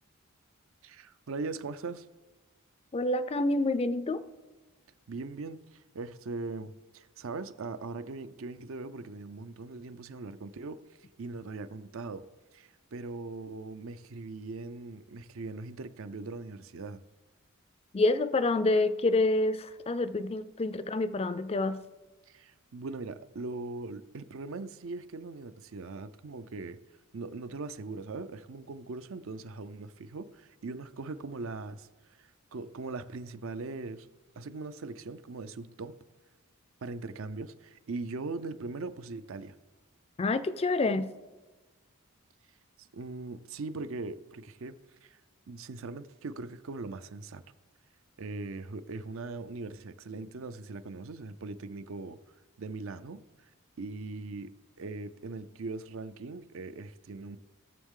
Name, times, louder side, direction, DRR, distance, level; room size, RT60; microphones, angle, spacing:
voice 1, 0.8-2.1 5.1-10.8 11.2-12.3 12.5-17.0 22.3-26.8 27.1-34.1 34.4-36.0 36.8-39.6 42.8-45.2 45.5-47.4 48.2-52.2 52.6-53.2 53.8-54.5 54.8-57.4, right 3 dB, 65° right, 0.5 m, -40 dB
voice 2, 2.9-4.2 17.9-21.8 40.2-41.1, left 2 dB, 25° left, 0.4 m, -27 dB
18.0 x 7.1 x 3.7 m
head